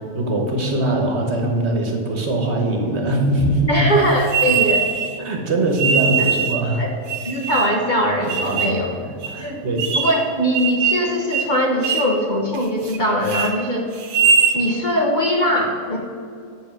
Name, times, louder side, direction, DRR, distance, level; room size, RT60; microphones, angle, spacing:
voice 1, 0.1-3.9 5.2-6.8 8.4-8.9 9.3-9.8, right 1 dB, 55° right, 2 dB, 1.3 m, -21 dB
voice 2, 3.7-4.9 6.2-6.3 6.8-7.0 7.2-8.9 9.4-9.6 10.0-13.9 14.5-16.0, equal, 40° left, 0 dB, 0.9 m, -21 dB
sound 1, 4.3-5.1 5.8-6.6 7.1-7.8 8.3-8.8 9.2-9.3 9.8-10.2 10.5-11.1 11.3-11.5 11.8-12.1 12.5-13.0 13.2-13.5 14.0-14.6, right 6 dB, 80° right, 1.3 m, -20 dB
8.0 x 5.4 x 6.1 m, 2.4 s
omnidirectional pair, 1.5 m